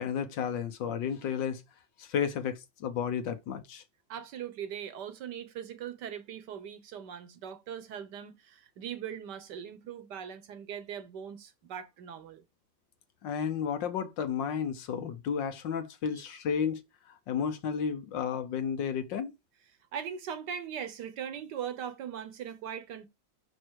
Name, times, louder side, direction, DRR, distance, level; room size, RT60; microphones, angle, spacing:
voice 1, 0.0-1.6 2.0-3.8 13.2-16.8 17.3-19.3, left 7 dB, 70° left, 1.6 m, -32 dB
voice 2, 4.1-12.4 16.1-16.2 19.9-23.1, right 8 dB, 65° right, 1.4 m, -40 dB
6.3 x 5.5 x 4.6 m
omnidirectional pair, 2.1 m